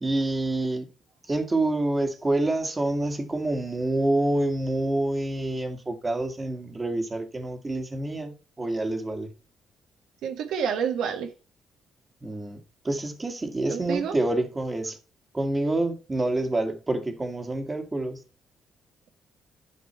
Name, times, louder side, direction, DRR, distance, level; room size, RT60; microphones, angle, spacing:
voice 1, 0.0-0.9 1.3-9.3 12.2-15.0 15.3-18.2, right 2 dB, 20° right, 1.8 m, -27 dB
voice 2, 10.2-11.3 13.7-14.2, right 7 dB, 80° right, 1.4 m, -28 dB
11.0 x 5.4 x 4.5 m
cardioid pair, 90°, 0 cm